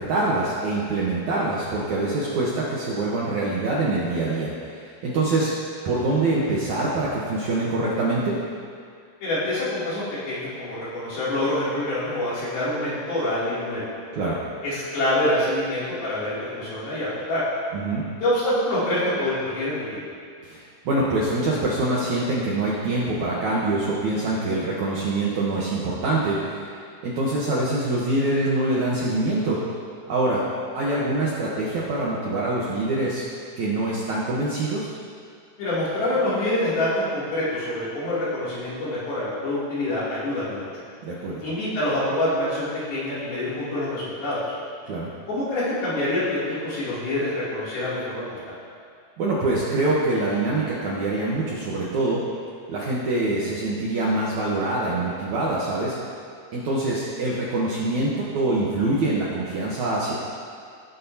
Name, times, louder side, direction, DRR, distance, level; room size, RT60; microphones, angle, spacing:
voice 1, 0.0-5.5 5.8-8.4 14.1-14.4 17.7-18.1 20.4-26.7 27.0-29.6 30.1-30.4 30.7-33.2 33.6-34.9 41.0-41.4 44.9-45.1 49.2-52.2 52.7-56.0 56.5-60.1, right 2 dB, 65° right, -6 dB, 1.9 m, -24 dB
voice 2, 9.2-13.8 14.6-17.4 18.2-20.0 35.6-40.8 41.4-44.5 45.3-48.4, left 1 dB, 65° left, -10 dB, 4.8 m, -26 dB
17.5 x 8.0 x 2.8 m, 2.3 s
omnidirectional pair, 4.7 m